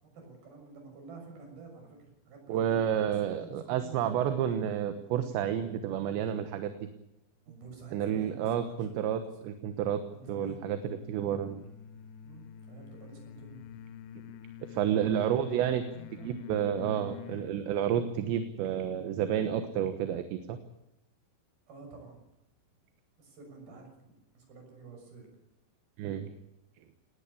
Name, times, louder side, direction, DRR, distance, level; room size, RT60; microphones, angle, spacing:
voice 1, 0.0-4.5 7.5-9.3 10.1-11.0 12.2-13.8 14.8-16.3 17.3-17.5 21.7-22.2 23.2-25.3, right 3 dB, 55° right, 3 dB, 8.1 m, -50 dB
voice 2, 2.5-6.7 7.9-10.0 10.3-10.8 11.1-11.7 14.7-15.8 16.2-20.6 26.0-26.3, right 9 dB, 75° right, 9 dB, 3.4 m, -30 dB
sound 1, 10.2-17.6, left 9 dB, 85° left, 1.8 m, -47 dB
19.5 x 18.5 x 8.6 m, 0.87 s
omnidirectional pair, 5.4 m